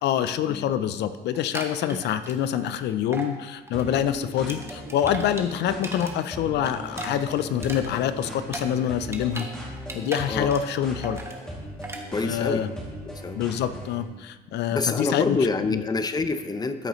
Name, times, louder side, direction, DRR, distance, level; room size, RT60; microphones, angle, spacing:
voice 1, 0.0-11.2 12.2-12.7 13.3-15.4 15.7-15.8, left 10 dB, 75° left, 12 dB, 0.5 m, -26 dB
sound 1, 1.3-2.8 3.1-3.3 3.7-6.1 6.4-9.5 9.8-10.8 11.0-11.4 11.8-12.0, right 2 dB, 15° right, 1.2 m, -37 dB
sound 2, 3.7-14.0, equal, 5° left, 2.4 m, -38 dB
voice 2, 12.1-12.7 13.1-13.4 14.7-16.9, left 3 dB, 20° left, 10 dB, 0.6 m, -27 dB
13.5 x 6.7 x 3.1 m, 1.2 s
cardioid pair, 100°, 18 cm